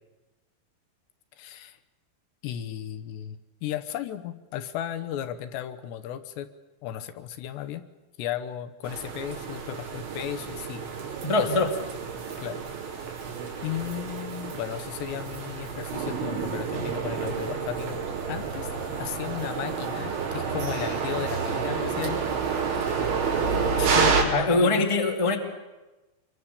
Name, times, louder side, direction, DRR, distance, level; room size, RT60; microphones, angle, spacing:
voice 1, 1.4-1.8 2.4-6.5 6.8-7.8 8.2-10.9 11.4-11.5 12.4-12.6 13.6-18.7 19.0-22.2 22.7-23.1 23.8-24.9, left 11 dB, 80° left, 10 dB, 3.1 m, -35 dB
sound 1, 8.8-24.2, right 5 dB, 90° right, 6.0 m, -29 dB
voice 2, 11.2-11.7 24.3-25.4, left 3 dB, 50° left, 2 dB, 0.3 m, -22 dB
26.0 x 23.0 x 7.0 m, 1.1 s
omnidirectional pair, 5.2 m